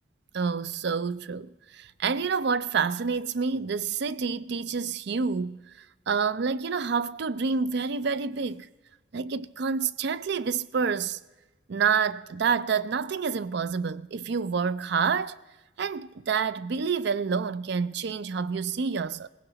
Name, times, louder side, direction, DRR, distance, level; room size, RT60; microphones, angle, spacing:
voice 1, 0.3-8.7 9.1-11.2 11.7-15.4 15.8-19.3, right 5 dB, 60° right, 0.4 m, -28 dB
19.5 x 16.0 x 4.0 m
head